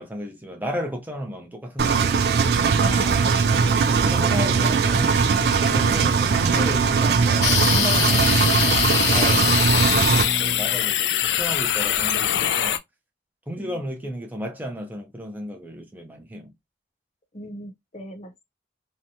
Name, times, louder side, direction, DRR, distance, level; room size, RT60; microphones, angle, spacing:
voice 1, 0.0-2.5 3.8-12.8 13.5-16.5, equal, 10° right, 0.5 m, -34 dB
Engine, 1.8-10.2, right 5 dB, 65° right, 0.3 m, -20 dB
Keyboard (musical), 2.3-11.0, right 2 dB, 30° right, 1.3 m, -35 dB
voice 2, 2.8-3.7 5.9-6.1 13.5-13.9 17.3-18.4, left 1 dB, 40° left, 0.7 m, -38 dB
sound 1, 7.4-12.8, left 11 dB, 85° left, 0.3 m, -22 dB
2.9 x 2.2 x 2.6 m
head